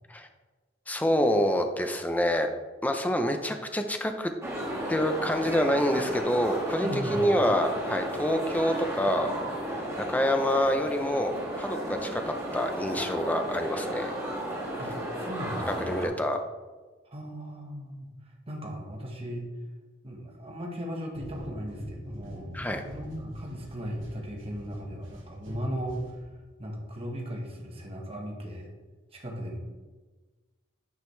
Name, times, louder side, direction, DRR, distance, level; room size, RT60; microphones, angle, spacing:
voice 1, 0.9-2.5 2.8-4.3 4.9-9.3 10.1-14.1 15.9-16.4 22.5-22.8, equal, 10° left, 6 dB, 0.5 m, -27 dB
sound 1, 4.4-16.1, right 1 dB, 15° right, 1.4 m, -34 dB
voice 2, 6.8-7.3 14.8-16.1 17.1-19.5 20.0-26.1 26.6-28.7 29.1-29.6, equal, 30° right, 0 dB, 1.2 m, -37 dB
sound 2, 21.1-26.6, equal, 80° right, 1.6 m, -44 dB
9.5 x 5.0 x 3.2 m, 1.3 s
head